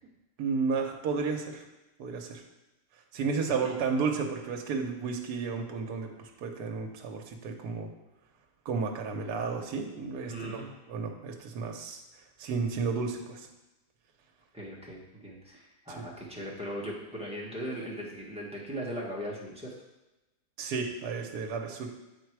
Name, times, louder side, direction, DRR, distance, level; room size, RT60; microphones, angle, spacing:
voice 1, 0.4-1.6 2.0-2.4 3.1-7.9 8.6-12.0 12.4-13.5 16.0-16.1 20.6-21.9, right 5 dB, 70° right, 3 dB, 1.3 m, -32 dB
voice 2, 10.3-10.7 14.5-19.7, equal, 5° right, -5 dB, 1.4 m, -38 dB
7.4 x 4.6 x 4.7 m, 1.0 s
omnidirectional pair, 1.8 m